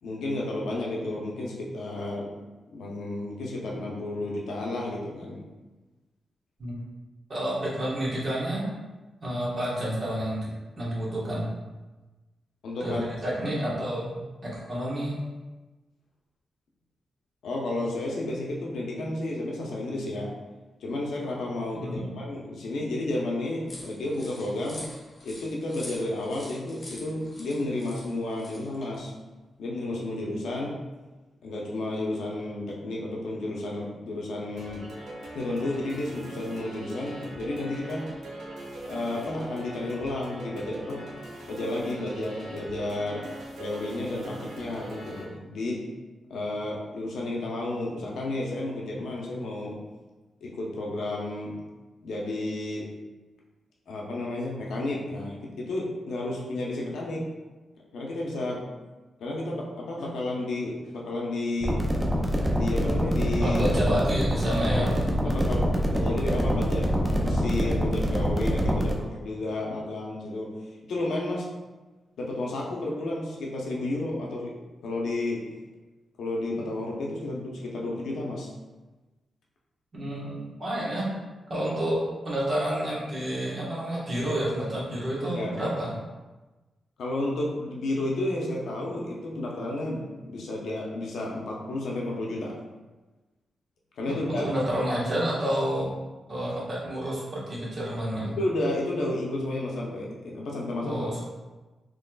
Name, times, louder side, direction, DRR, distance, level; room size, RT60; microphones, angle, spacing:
voice 1, 0.0-2.3 2.7-5.4 12.6-13.1 17.4-20.3 20.8-24.8 25.2-29.1 29.6-30.7 31.4-34.9 35.3-38.0 38.9-41.1 41.5-43.2 43.6-45.8 46.3-49.8 50.4-51.6 52.0-52.9 53.9-57.2 57.9-58.6 59.2-61.8 62.5-63.6 64.6-64.9 65.2-70.5 70.9-71.5 72.2-74.5 74.8-75.4 76.2-78.5 85.3-85.6 87.0-92.5 94.0-94.5 98.4-101.1, left 2 dB, 80° left, -3 dB, 0.7 m, -32 dB
voice 2, 7.3-8.7 9.2-11.5 12.8-13.0 13.2-14.2 14.4-15.2 21.7-22.2 63.4-65.4 79.9-81.1 81.5-85.9 94.0-95.9 96.3-98.3 100.8-101.3, right 1 dB, 40° right, -6 dB, 1.2 m, -29 dB
sound 1, 23.7-29.0, left 1 dB, 40° left, 0.9 m, -45 dB
sound 2, 34.6-45.2, right 1 dB, 85° right, 0.7 m, -41 dB
sound 3, 61.6-68.9, equal, 15° right, 0.5 m, -25 dB
3.9 x 3.1 x 2.3 m, 1.2 s
wide cardioid pair, 120°, 0 cm